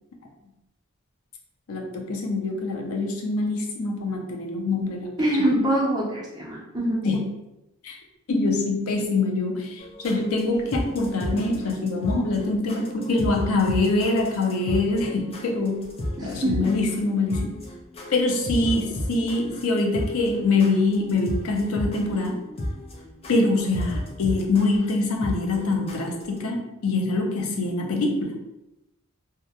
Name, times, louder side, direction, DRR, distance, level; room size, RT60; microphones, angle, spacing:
voice 1, 1.7-5.6 7.0-7.3 7.8-8.0 8.3-15.9 16.2-17.5 18.1-22.4 23.3-28.4, left 3 dB, 90° left, 2 dB, 0.5 m, -24 dB
voice 2, 5.2-7.1 16.2-16.7, right 1 dB, 20° right, -5 dB, 0.6 m, -24 dB
sound 1, 9.8-26.4, left 1 dB, 25° left, 0.3 m, -34 dB
2.3 x 2.1 x 2.8 m, 0.90 s
head